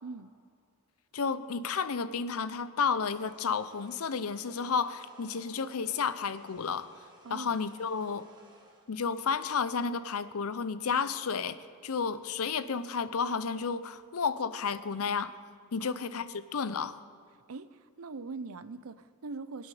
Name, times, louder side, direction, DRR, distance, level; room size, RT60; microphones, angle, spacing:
voice 1, 0.0-0.3 7.2-7.6 15.8-16.2 17.3-19.7, right 3 dB, 75° right, 14 dB, 0.6 m, -42 dB
voice 2, 1.1-6.9 7.3-8.3 8.9-11.6 11.8-15.3 15.7-17.0, left 5 dB, 75° left, 14 dB, 0.7 m, -32 dB
sound 1, 3.1-8.9, right 2 dB, 20° right, 2.0 m, -59 dB
21.5 x 8.8 x 4.9 m, 2.2 s
head